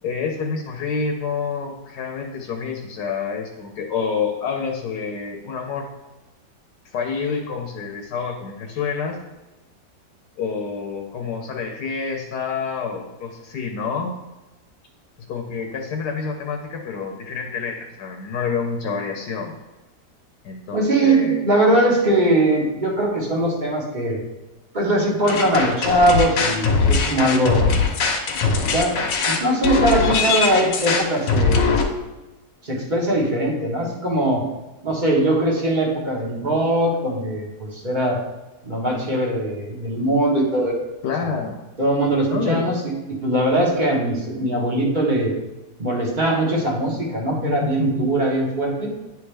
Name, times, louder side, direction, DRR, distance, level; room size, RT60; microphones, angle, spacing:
voice 1, 0.0-5.9 6.9-9.2 10.4-14.1 15.2-19.5 20.4-21.4 41.0-41.6 42.3-42.7 47.3-47.9, left 5 dB, 70° left, 2 dB, 1.3 m, -28 dB
voice 2, 20.7-24.2 24.7-27.7 28.6-29.0 29.3-31.8 32.6-34.4 34.8-38.2 38.6-40.8 41.8-45.3 45.8-48.9, right 1 dB, 30° right, -3 dB, 1.2 m, -21 dB
sound 1, 25.3-31.8, left 4 dB, 90° left, 1.5 m, -21 dB
9.7 x 3.5 x 3.4 m, 1.1 s
omnidirectional pair, 1.9 m